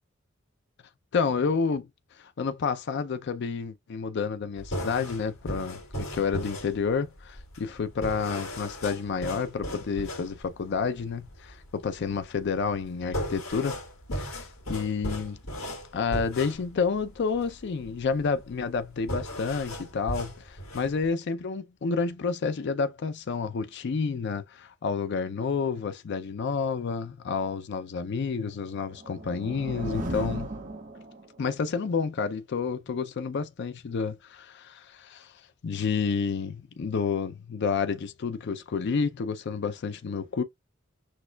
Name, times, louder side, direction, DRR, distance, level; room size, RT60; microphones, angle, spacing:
voice 1, 1.1-1.9 2.2-13.8 14.1-15.4 15.9-30.5 31.4-35.3 35.6-40.4, left 5 dB, 55° left, 0.4 m, -30 dB
sound 1, 4.6-21.1, equal, 80° left, 2.1 m, -37 dB
sound 2, 28.7-31.5, right 1 dB, 40° right, 1.2 m, -36 dB
6.3 x 2.4 x 2.2 m
head